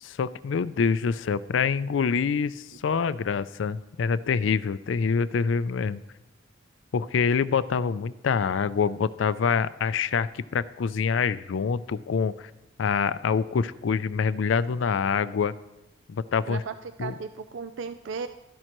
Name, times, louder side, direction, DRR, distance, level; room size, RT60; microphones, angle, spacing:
voice 1, 0.0-6.0 6.9-12.5 12.8-15.5 16.1-16.6 17.0-17.1, left 6 dB, 80° left, 16 dB, 0.4 m, -26 dB
voice 2, 16.5-18.3, right 5 dB, 70° right, 10 dB, 0.4 m, -36 dB
13.0 x 11.0 x 3.0 m, 1.1 s
head